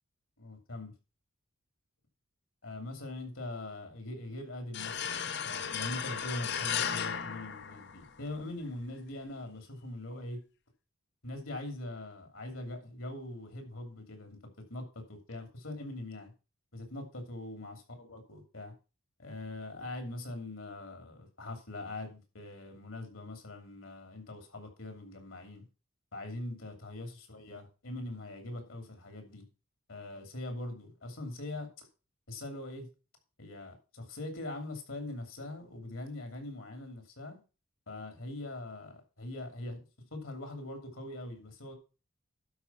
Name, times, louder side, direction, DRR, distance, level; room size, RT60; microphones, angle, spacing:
voice 1, 0.4-0.9 2.6-10.4 11.2-16.3 16.7-18.7 19.2-25.7 26.1-29.4 29.9-31.9 32.3-32.9 33.4-37.4 37.9-41.8, left 2 dB, 70° left, 5 dB, 2.8 m, -42 dB
sound 1, 4.7-8.3, left 8 dB, 50° left, 0.6 m, -35 dB
12.0 x 5.1 x 5.6 m, 0.32 s
head